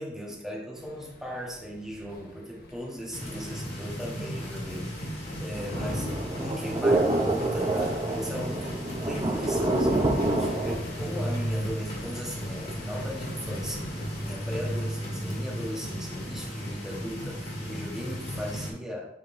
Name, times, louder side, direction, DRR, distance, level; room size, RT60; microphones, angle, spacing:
voice 1, 0.0-19.2, equal, 5° right, -3 dB, 1.1 m, -38 dB
sound 1, 0.7-14.9, left 1 dB, 55° left, 1.1 m, -48 dB
sound 2, 3.1-18.7, equal, 35° left, 1.9 m, -35 dB
sound 3, 5.6-10.7, right 2 dB, 25° right, 0.6 m, -27 dB
10.0 x 3.8 x 2.6 m, 0.81 s
head